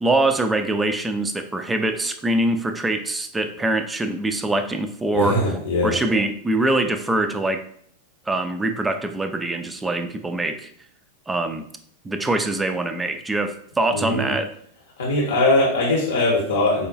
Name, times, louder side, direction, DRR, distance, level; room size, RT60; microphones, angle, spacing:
voice 1, 0.0-7.6 8.3-10.7 11.3-11.6 12.0-14.5, right 2 dB, 10° right, 8 dB, 0.3 m, -23 dB
voice 2, 5.1-6.0 13.9-14.3 15.0-16.9, left 2 dB, 65° left, -2 dB, 0.7 m, -21 dB
4.8 x 2.2 x 2.4 m, 0.65 s
figure-of-eight pair, 90°, 0 cm